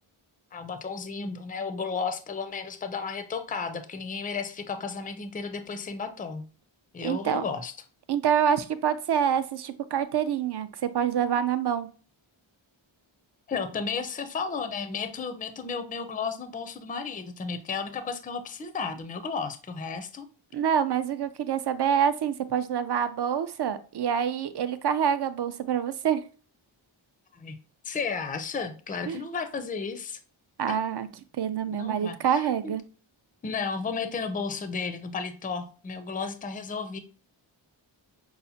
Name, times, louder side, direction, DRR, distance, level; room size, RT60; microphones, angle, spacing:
voice 1, 0.5-6.4 6.9-7.7 13.5-20.3 27.3-27.6 27.8-30.2 30.7-30.8 31.7-32.7 33.4-37.0, left 5 dB, 20° left, 9 dB, 0.4 m, -33 dB
voice 2, 7.0-7.4 8.1-11.9 20.5-26.2 29.1-29.2 30.6-31.1 31.4-32.8, right 8 dB, 55° right, 12 dB, 0.5 m, -26 dB
5.6 x 2.1 x 2.7 m, 0.38 s
wide cardioid pair, 65°, 49 cm